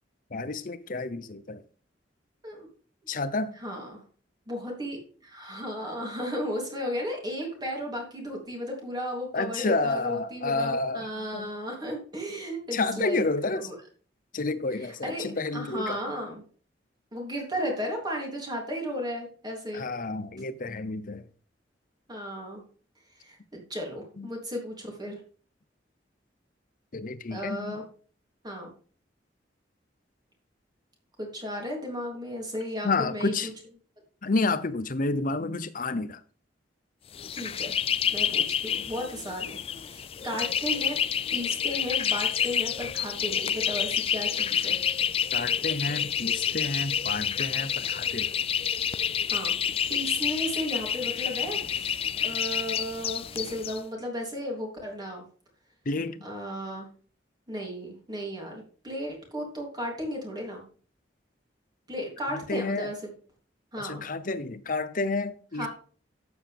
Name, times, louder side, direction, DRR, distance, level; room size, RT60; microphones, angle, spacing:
voice 1, 0.3-1.6 3.1-3.6 9.3-11.5 12.7-13.7 14.3-16.0 19.7-21.3 24.2-24.3 26.9-27.8 32.8-33.5 34.2-36.2 45.3-48.3 55.9-56.3 62.3-62.9 63.8-65.7, left 3 dB, 50° left, 0.8 m, -30 dB
voice 2, 3.6-4.0 4.5-13.2 13.5-13.7 14.8-15.3 15.5-16.4 17.1-19.8 22.1-22.6 23.2-25.2 27.3-27.9 28.4-28.7 31.2-33.5 37.3-37.7 38.1-41.0 41.3-44.8 49.3-49.5 49.9-55.2 56.2-56.9 57.5-60.6 61.9-63.1 63.7-64.0 65.6-65.7, equal, 25° right, 3.3 m, -34 dB
sound 1, 37.1-53.8, left 8 dB, 35° left, 0.3 m, -29 dB
12.0 x 8.0 x 3.6 m
head